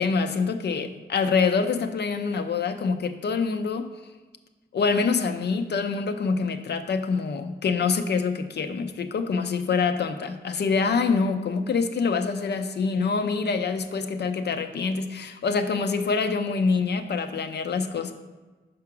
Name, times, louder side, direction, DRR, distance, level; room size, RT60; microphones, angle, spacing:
voice 1, 0.0-3.9 4.7-18.1, left 5 dB, 75° left, 8 dB, 0.5 m, -25 dB
5.7 x 4.8 x 5.9 m, 1.3 s
wide cardioid pair, 175°, 18 cm